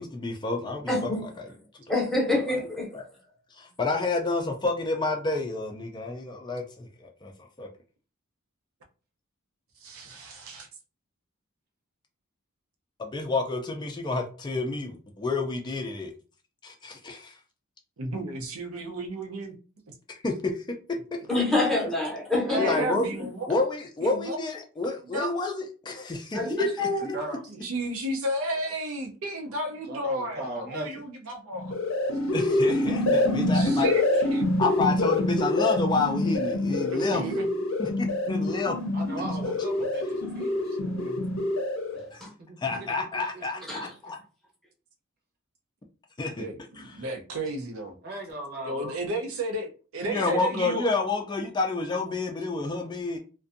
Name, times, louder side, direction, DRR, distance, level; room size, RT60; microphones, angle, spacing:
voice 1, 0.0-1.5 2.3-2.4 2.9-3.1 3.5-7.7 13.0-16.1 16.6-17.4 20.1-20.6 22.6-23.1 23.5-26.9 32.3-33.9 34.6-37.2 37.8-38.8 42.1-42.2 42.6-44.2 46.2-46.5 46.8-46.9 50.1-53.2, left 3 dB, 20° left, 0.3 m, -29 dB
voice 2, 0.9-1.2 1.9-2.9 21.3-23.0 26.3-27.2 42.2-42.3 43.7-43.9, left 2 dB, ahead, 0.7 m, -26 dB
voice 3, 9.8-10.7 18.0-19.5 19.9-20.0 22.5-23.5 24.0-24.4 25.1-25.4 27.5-31.8 33.1-34.5 36.6-37.5 40.8-41.2 46.4-47.9 48.6-50.9, right 1 dB, 80° right, 0.6 m, -33 dB
voice 4, 26.8-27.4 29.9-31.0 37.0-37.1 38.9-40.8 42.4-43.9 48.0-48.9, right 1 dB, 50° right, 0.8 m, -38 dB
sound 1, 31.5-42.1, left 1 dB, 65° left, 0.6 m, -26 dB
2.5 x 2.2 x 2.5 m
head